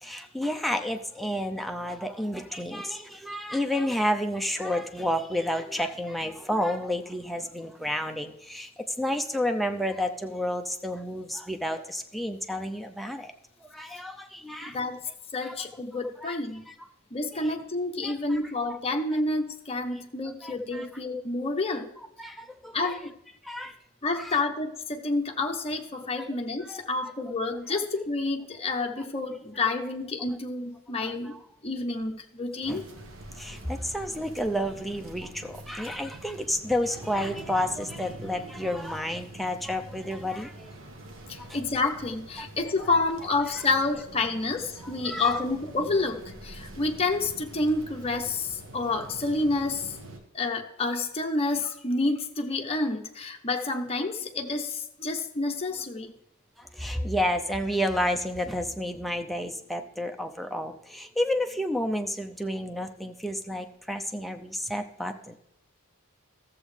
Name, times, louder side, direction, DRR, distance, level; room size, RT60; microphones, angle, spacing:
voice 1, 0.0-8.7 9.0-13.3 13.6-14.8 15.4-15.6 16.2-16.4 16.7-16.8 17.4-17.5 18.0-18.4 18.7-18.8 20.4-20.9 22.2-23.0 23.4-23.7 24.2-24.4 26.2-26.3 26.7-26.8 31.0-31.4 32.7-32.8 33.3-40.7 41.5-41.6 42.4-42.5 44.8-45.3 56.6-65.4, left 1 dB, ahead, 4 dB, 0.5 m, -31 dB
voice 2, 14.6-15.0 15.3-16.7 17.1-21.9 22.7-23.1 24.0-31.4 31.6-32.8 41.3-50.0 50.3-56.1, left 3 dB, 30° left, 3 dB, 0.8 m, -29 dB
sound 1, 32.6-50.2, right 1 dB, 65° right, 1.1 m, -45 dB
13.5 x 7.2 x 3.3 m, 0.77 s
head